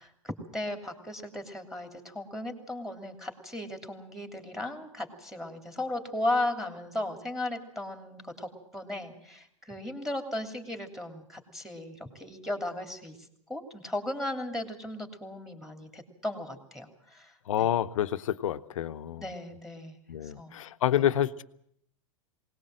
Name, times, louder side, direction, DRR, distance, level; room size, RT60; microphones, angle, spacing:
voice 1, 0.0-13.2 13.5-17.3 17.6-17.7 19.2-20.0 20.2-20.5 20.9-21.0, left 1 dB, ahead, 6 dB, 3.1 m, -36 dB
voice 2, 17.5-19.2 20.1-21.4, left 11 dB, 80° left, 12 dB, 0.9 m, -28 dB
20.5 x 19.0 x 7.8 m, 0.71 s
hypercardioid pair, 115°, 17 cm